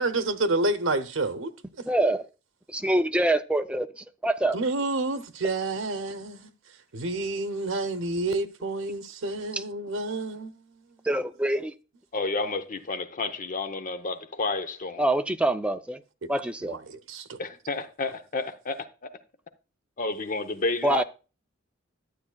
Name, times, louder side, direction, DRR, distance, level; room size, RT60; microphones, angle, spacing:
voice 1, 0.0-1.9 4.5-6.5 6.9-10.6 16.6-17.4, right 2 dB, 90° right, 0.8 m, -29 dB
voice 2, 1.9-2.3 2.7-4.6 9.5-9.6 11.0-11.7 15.0-16.0 16.3-16.8 20.8-21.0, right 1 dB, 5° right, 0.5 m, -25 dB
voice 3, 12.1-15.0 17.4-18.9 20.0-21.0, left 3 dB, 40° left, 0.8 m, -30 dB
12.0 x 8.6 x 2.3 m
head